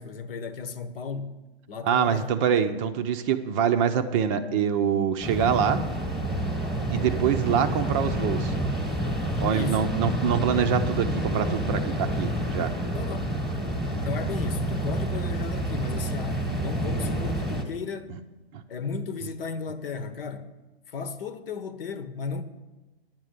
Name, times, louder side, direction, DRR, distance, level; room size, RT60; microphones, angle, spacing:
voice 1, 0.0-1.4 1.7-2.3 9.5-9.8 12.9-13.4 13.7-18.2 18.7-20.5 20.9-22.4, left 5 dB, 60° left, 1.1 m, -35 dB
voice 2, 1.9-5.8 6.9-8.5 9.4-12.7 18.5-18.6, right 8 dB, 30° right, 0.6 m, -25 dB
sound 1, 5.2-17.6, right 1 dB, ahead, 1.3 m, -28 dB
10.5 x 7.3 x 8.1 m
hypercardioid pair, 125°, 32 cm